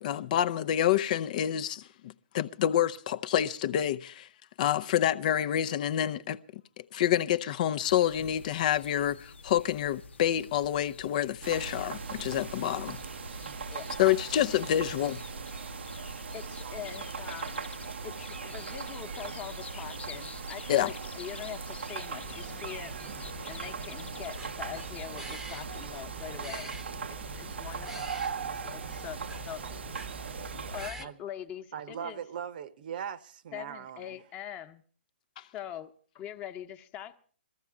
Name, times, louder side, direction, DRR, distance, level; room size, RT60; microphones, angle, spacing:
voice 1, 0.0-4.3 4.6-6.4 6.8-13.0 14.0-15.2 20.7-20.9 35.4-35.5, left 11 dB, 45° left, 0.6 m, -28 dB
sound 1, 7.8-26.1, left 4 dB, 80° left, 0.9 m, -49 dB
sound 2, 11.4-30.9, right 5 dB, 75° right, 0.8 m, -39 dB
voice 2, 16.3-17.7 18.0-23.0 23.5-26.7 27.1-28.1 28.6-29.2 29.4-29.9 30.7-32.2 33.5-34.8 35.4-37.2, left 11 dB, 25° left, 1.0 m, -43 dB
sound 3, 22.2-31.1, right 1 dB, 5° right, 0.9 m, -46 dB
voice 3, 28.8-29.8 31.0-31.2 31.7-34.2, right 8 dB, 50° right, 0.9 m, -41 dB
21.5 x 15.0 x 3.6 m
hypercardioid pair, 140°, 6 cm